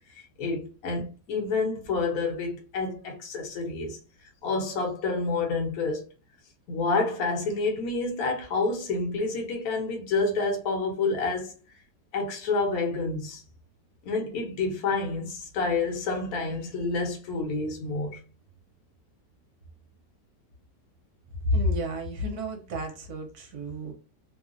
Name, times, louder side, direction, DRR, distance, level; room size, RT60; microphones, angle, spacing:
voice 1, 0.1-4.0 4.4-6.0 6.7-11.6 12.1-13.4 14.0-18.2, left 3 dB, 60° left, 1.1 m, -28 dB
voice 2, 21.4-23.9, left 1 dB, 65° right, 1.1 m, -29 dB
3.0 x 2.1 x 2.4 m
omnidirectional pair, 1.9 m